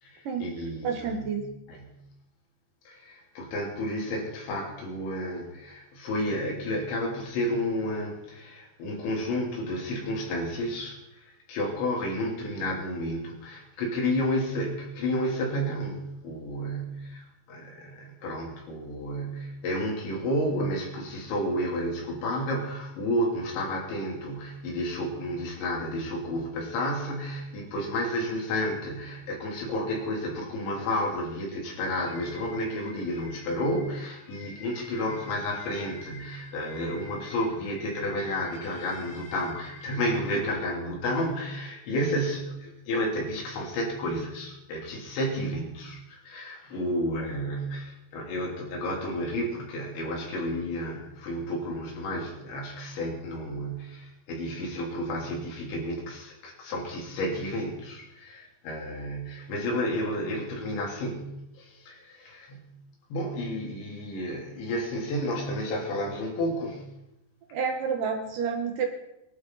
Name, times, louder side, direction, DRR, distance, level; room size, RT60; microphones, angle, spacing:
voice 1, 0.0-1.4 1.7-1.9 2.9-62.7 63.1-66.9, equal, 85° left, -1 dB, 5.7 m, -31 dB
voice 2, 0.8-1.4 67.5-68.9, right 6 dB, 60° right, 3 dB, 2.6 m, -29 dB
sound 1, 31.8-40.5, left 2 dB, 50° left, 1.5 m, -48 dB
23.5 x 12.0 x 4.1 m, 0.84 s
omnidirectional pair, 5.0 m